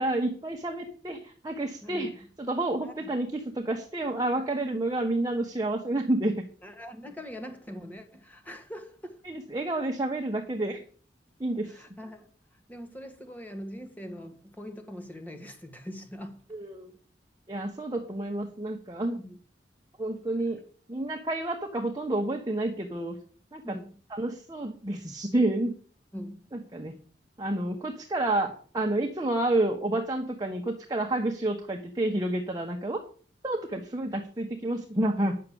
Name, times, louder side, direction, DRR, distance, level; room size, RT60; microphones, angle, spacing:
voice 1, 0.0-2.1 2.4-6.3 9.2-10.8 11.4-11.7 16.5-16.9 17.5-19.2 20.0-20.6 20.9-23.2 23.5-23.8 24.1-25.7 26.5-27.0 27.4-33.0 33.4-35.4, right 1 dB, 25° right, 1.3 m, -29 dB
voice 2, 6.6-9.2 11.6-12.3 12.7-16.4 19.2-19.4 23.6-24.0 26.1-26.5, equal, 10° left, 1.8 m, -42 dB
9.8 x 6.7 x 7.2 m
head